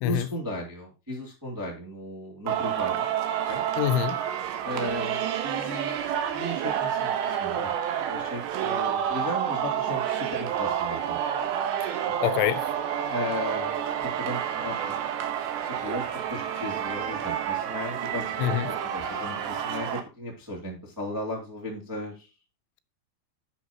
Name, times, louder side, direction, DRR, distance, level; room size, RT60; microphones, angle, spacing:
voice 1, 0.0-3.1 3.5-3.6 4.6-6.0 6.3-7.7 8.0-11.2 12.2-12.3 13.1-13.8 14.0-15.0 15.4-22.3, left 1 dB, 10° right, 0.9 m, -36 dB
Singing, 2.5-20.0, right 9 dB, 75° right, 3.2 m, -29 dB
voice 2, 3.8-4.2 11.8-11.9 12.2-12.6 18.4-18.7, left 14 dB, 85° left, 3.0 m, -25 dB
11.0 x 8.2 x 2.9 m
omnidirectional pair, 5.4 m